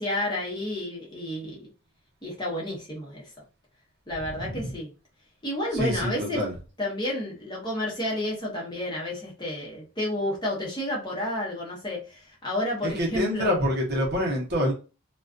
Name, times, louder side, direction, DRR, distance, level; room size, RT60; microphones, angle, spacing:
voice 1, 0.0-1.7 2.2-3.2 4.1-4.9 5.4-6.4 6.8-13.5, left 1 dB, 20° left, -4 dB, 0.8 m, -31 dB
voice 2, 4.2-4.7 5.7-6.5 12.8-14.7, equal, 50° right, -2 dB, 0.8 m, -27 dB
2.3 x 2.3 x 2.4 m, 0.33 s
head